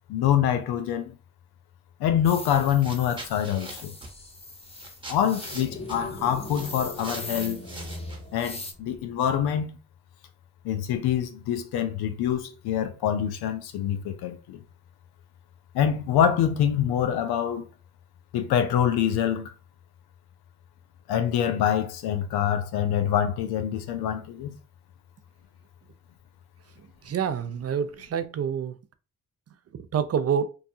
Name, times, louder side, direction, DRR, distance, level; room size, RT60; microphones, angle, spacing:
voice 1, 0.1-1.1 2.0-3.9 5.1-7.6 8.3-9.8 10.6-14.6 15.7-17.7 18.3-19.5 21.1-24.6, left 9 dB, 85° left, 0.5 m, -25 dB
sound 1, 2.2-8.7, left 2 dB, 15° left, 0.6 m, -42 dB
sound 2, 2.2-2.4 2.7-8.5, right 2 dB, 15° right, 0.9 m, -44 dB
sound 3, 5.4-9.1, left 1 dB, 45° left, 1.5 m, -40 dB
voice 2, 27.0-28.8 29.9-30.5, right 7 dB, 40° right, 0.4 m, -27 dB
2.6 x 2.3 x 2.6 m
supercardioid pair, 45°, 37 cm